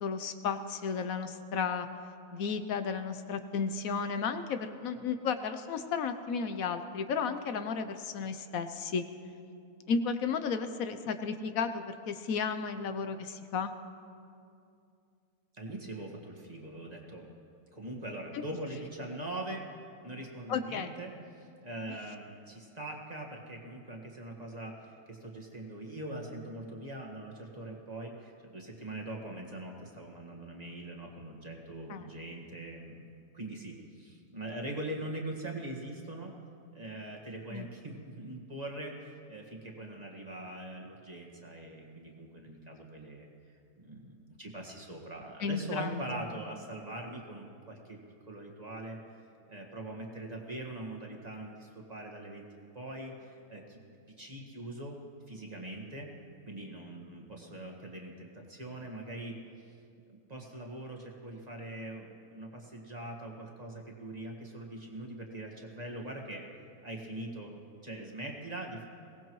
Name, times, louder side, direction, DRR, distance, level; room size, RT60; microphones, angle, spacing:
voice 1, 0.0-1.9 2.3-9.0 9.9-13.7 20.5-20.9 31.9-32.1 37.5-37.7 45.4-46.0, left 5 dB, 75° left, 9 dB, 1.1 m, -33 dB
voice 2, 15.5-17.3 17.7-19.6 20.0-33.1 33.3-36.3 36.7-39.0 39.3-43.3 43.8-48.0 48.3-49.2 49.5-53.8 54.2-55.0 55.3-56.1 56.5-59.4 60.1-66.4 66.8-68.9, right 1 dB, 30° right, -1 dB, 1.8 m, -42 dB
22.5 x 18.0 x 3.1 m, 2.5 s
omnidirectional pair, 1.5 m